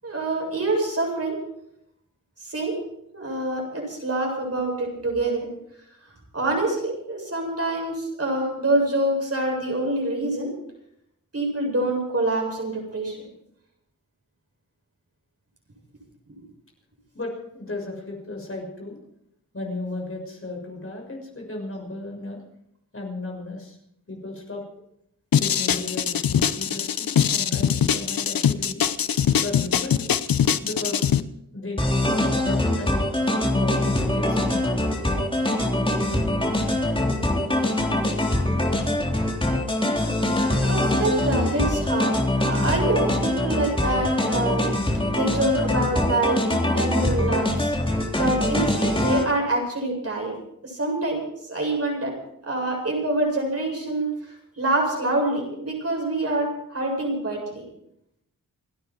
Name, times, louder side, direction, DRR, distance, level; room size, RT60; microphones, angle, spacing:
voice 1, 0.0-1.4 2.4-2.7 3.1-5.5 6.3-10.5 11.3-13.2 40.6-44.7 45.1-46.5 46.7-47.7 48.2-50.3 50.6-52.2 52.4-57.6, right 2 dB, 45° right, 0 dB, 7.7 m, -26 dB
voice 2, 17.1-19.0 19.5-22.4 22.9-23.8 24.1-24.6 25.4-28.8 29.4-30.1 30.6-31.1 31.5-33.0 33.5-34.7, left 2 dB, 40° left, 0 dB, 6.5 m, -34 dB
sound 1, 25.3-31.2, left 8 dB, 90° left, 0.8 m, -22 dB
sound 2, 31.8-49.2, left 1 dB, 15° left, 3.6 m, -23 dB
29.0 x 10.0 x 4.7 m, 0.77 s
wide cardioid pair, 80°, 34 cm